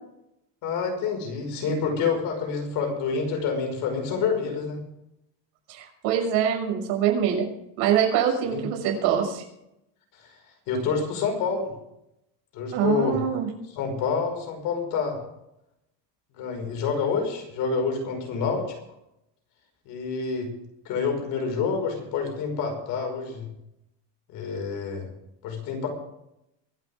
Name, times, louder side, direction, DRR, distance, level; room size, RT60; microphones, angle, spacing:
voice 1, 0.6-4.8 8.4-8.6 10.1-10.3 10.7-11.7 12.5-13.2 13.7-15.2 16.3-18.6 19.9-20.5 20.9-23.5 24.3-25.1 25.4-25.9, left 5 dB, 45° left, 3 dB, 5.4 m, -28 dB
voice 2, 5.7-7.5 7.8-9.4 12.7-13.5, right 9 dB, 60° right, 2 dB, 6.3 m, -24 dB
24.0 x 12.0 x 3.6 m, 0.82 s
cardioid pair, 175°, 46 cm